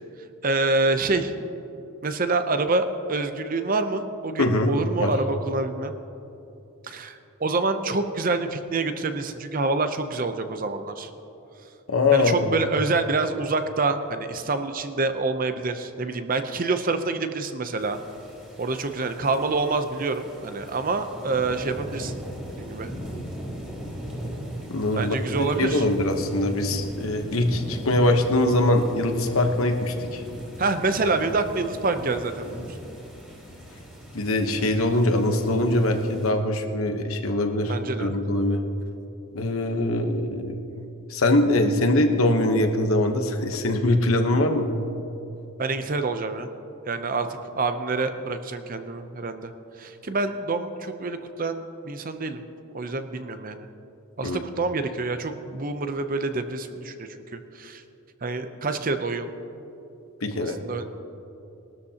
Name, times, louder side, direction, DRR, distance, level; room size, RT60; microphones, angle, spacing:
voice 1, 0.4-1.3 2.0-5.9 6.9-11.1 12.1-18.0 18.6-22.2 22.6-22.9 24.9-25.8 30.6-32.7 37.7-38.1 45.6-46.5 46.9-47.3 47.5-49.5 49.8-52.4 52.7-53.7 54.2-57.8 58.2-59.3 60.4-60.8, right 3 dB, 40° right, 9 dB, 0.6 m, -27 dB
voice 2, 4.4-4.7 5.0-5.1 11.9-12.5 24.7-30.2 34.1-38.6 39.3-40.6 41.1-44.7 54.2-54.4 60.2-60.6, left 1 dB, 75° left, 5 dB, 1.0 m, -23 dB
sound 1, 17.8-36.3, equal, 5° right, 2.8 m, -38 dB
20.0 x 13.0 x 2.9 m, 2.9 s
head